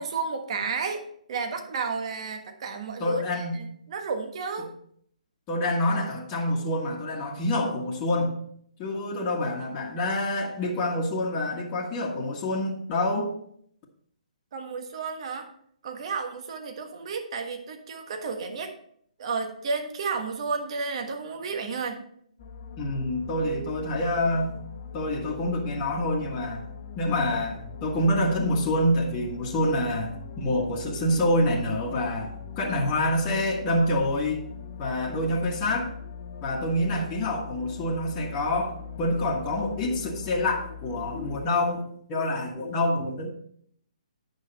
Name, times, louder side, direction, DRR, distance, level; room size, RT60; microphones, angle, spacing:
voice 1, 0.0-4.7 14.5-15.5 15.8-18.7 19.2-22.0, right 4 dB, 50° right, 5 dB, 1.3 m, -32 dB
voice 2, 3.0-3.6 5.5-8.3 8.8-13.3 22.8-24.6 24.9-26.7 27.0-34.5 34.8-35.9 36.4-41.8 42.1-43.3, left 1 dB, 25° left, -3 dB, 1.4 m, -27 dB
sound 1, 22.4-41.4, left 6 dB, 40° left, 0.9 m, -41 dB
8.8 x 6.2 x 4.1 m, 0.64 s
hypercardioid pair, 140°, 4 cm